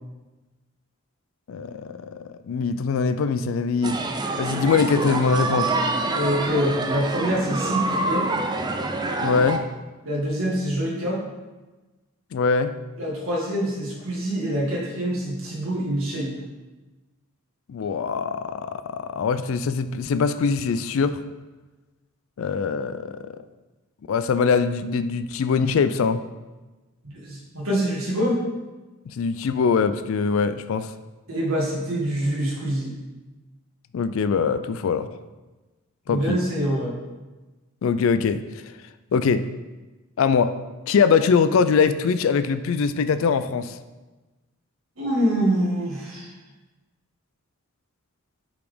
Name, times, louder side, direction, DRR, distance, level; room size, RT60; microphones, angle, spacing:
voice 1, 1.5-4.0 4.4-5.7 9.2-9.6 12.3-12.7 17.7-21.2 22.4-23.2 24.1-26.2 29.1-30.9 33.9-35.1 36.1-36.4 37.8-38.4 39.1-39.4 40.2-40.5 40.9-43.8, left 5 dB, 60° left, 12 dB, 0.3 m, -22 dB
sound 1, 3.8-9.6, right 2 dB, 20° right, 0.4 m, -26 dB
voice 2, 6.1-8.3 10.1-11.2 13.0-16.3 27.0-28.4 31.3-32.9 36.1-36.9 45.0-46.3, equal, 65° right, -4 dB, 1.8 m, -25 dB
5.7 x 4.2 x 5.0 m, 1.2 s
head